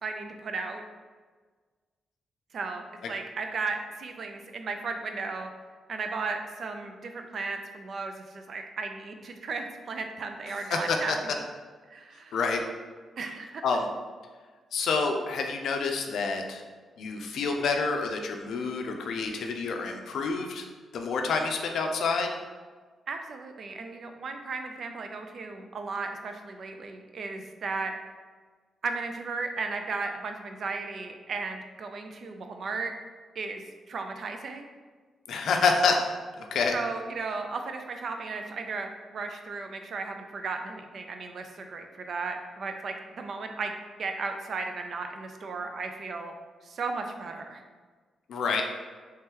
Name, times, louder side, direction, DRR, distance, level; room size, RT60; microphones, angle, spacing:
voice 1, 0.0-0.8 2.5-5.5 5.9-11.4 11.9-12.4 13.2-13.6 23.1-27.9 28.8-32.9 33.4-33.6 33.9-34.7 36.7-43.7 44.0-46.3 46.6-47.6, right 4 dB, 55° right, 5 dB, 0.4 m, -35 dB
voice 2, 10.7-11.2 12.3-12.6 13.6-13.9 14.7-16.6 17.0-20.6 20.9-22.3 35.3-36.1 36.4-36.7 48.3-48.6, left 4 dB, 75° left, 4 dB, 0.4 m, -28 dB
3.1 x 2.9 x 3.6 m, 1.4 s
cardioid pair, 115°, 0 cm